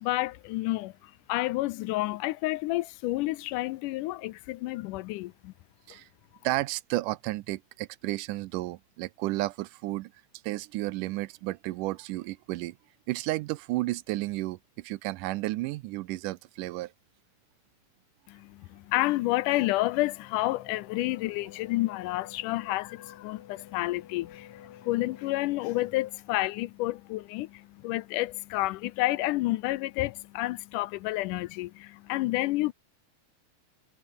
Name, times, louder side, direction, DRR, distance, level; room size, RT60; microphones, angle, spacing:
voice 1, 0.0-5.5 18.3-32.7, left 18 dB, 85° left, 2.1 m, -30 dB
voice 2, 6.4-10.1 10.4-12.8 13.1-16.9, right 18 dB, 80° right, 2.2 m, -32 dB
Race car auto racing / Accelerating revving vroom, 19.3-26.6, left 10 dB, 65° left, 2.8 m, -52 dB
omnidirectional pair, 3.8 m